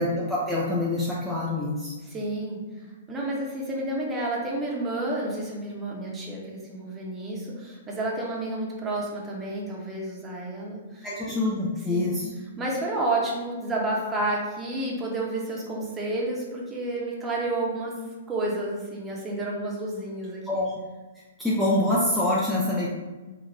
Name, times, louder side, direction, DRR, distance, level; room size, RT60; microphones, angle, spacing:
voice 1, 0.0-1.9 11.0-12.3 20.5-20.8 21.4-22.9, left 1 dB, ahead, -8 dB, 0.6 m, -25 dB
voice 2, 2.0-2.6 3.1-11.1 11.9-12.1 12.6-17.9 18.3-20.7, right 2 dB, 15° right, -3 dB, 1.0 m, -30 dB
4.0 x 2.4 x 3.4 m, 1.2 s
figure-of-eight pair, 115°, 0 cm